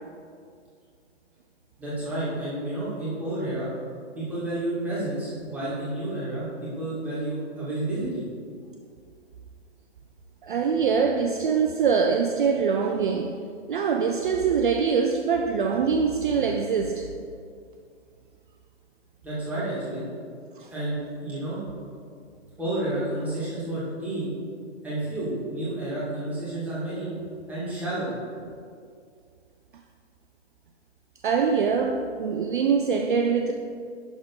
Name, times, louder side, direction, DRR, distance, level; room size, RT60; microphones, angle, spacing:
voice 1, 1.8-3.7 4.1-8.2 19.2-20.0 20.7-21.6 22.6-24.3 24.8-27.1 27.5-28.1, right 1 dB, 5° right, 2.1 m, -30 dB
voice 2, 10.4-13.4 13.7-17.1 20.6-20.7 31.2-33.5, right 6 dB, 45° right, 0.5 m, -24 dB
11.0 x 3.7 x 5.4 m
hypercardioid pair, 160°, 34 cm